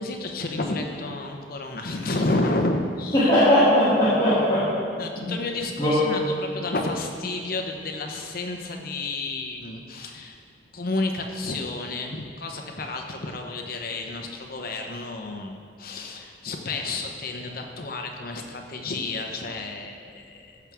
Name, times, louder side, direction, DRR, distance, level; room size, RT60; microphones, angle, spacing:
voice 1, 0.0-3.3 5.0-10.4 10.7-20.6, left 2 dB, 50° left, 3 dB, 0.9 m, -31 dB
voice 2, 3.1-4.7 5.2-5.3 5.8-6.0, left 1 dB, 25° left, -13 dB, 2.5 m, -19 dB
14.5 x 6.1 x 3.6 m, 2.2 s
head